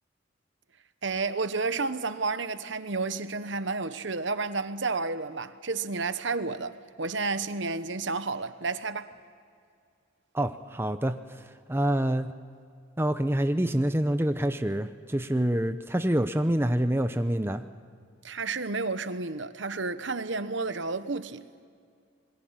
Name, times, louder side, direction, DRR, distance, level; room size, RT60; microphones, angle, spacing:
voice 1, 1.0-9.1 18.2-21.4, right 3 dB, 65° right, 1.0 m, -31 dB
voice 2, 10.3-11.1 11.7-12.3 13.0-17.6, right 1 dB, 10° right, 0.7 m, -26 dB
26.5 x 22.0 x 7.4 m
head